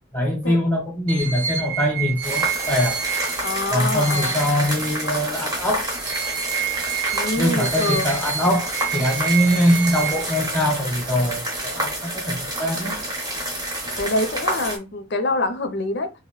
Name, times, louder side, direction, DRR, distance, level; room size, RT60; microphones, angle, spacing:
voice 1, 0.1-3.0 3.7-5.9 7.4-13.0, equal, 10° left, 0.9 m, -22 dB
sound 1, 1.1-5.5 5.9-10.8, right 8 dB, 75° right, 0.6 m, -29 dB
sound 2, 2.2-14.8, right 1 dB, 20° right, 0.8 m, -28 dB
voice 2, 3.4-4.7 7.1-8.2 14.0-16.1, left 2 dB, 50° left, 0.5 m, -26 dB
2.9 x 2.6 x 3.0 m
head